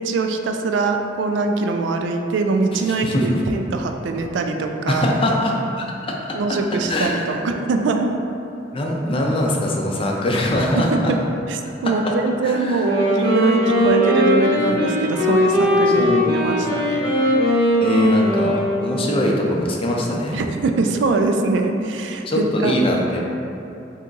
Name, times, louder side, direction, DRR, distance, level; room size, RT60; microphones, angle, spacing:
voice 1, 0.0-5.2 6.3-8.1 10.7-11.2 11.5-17.0 20.3-22.7, right 3 dB, 90° right, 4 dB, 0.3 m, -22 dB
voice 2, 2.7-3.4 4.9-5.9 6.5-6.6 6.9-7.3 8.7-11.1 12.4-12.9 14.6-14.7 15.9-16.4 17.8-18.5 18.8-20.4 22.3-23.2, left 1 dB, 30° left, -1 dB, 0.4 m, -22 dB
Wind instrument woodwind instrument, 12.7-19.2, equal, 60° right, 0.9 m, -19 dB
3.5 x 2.8 x 3.8 m, 2.8 s
head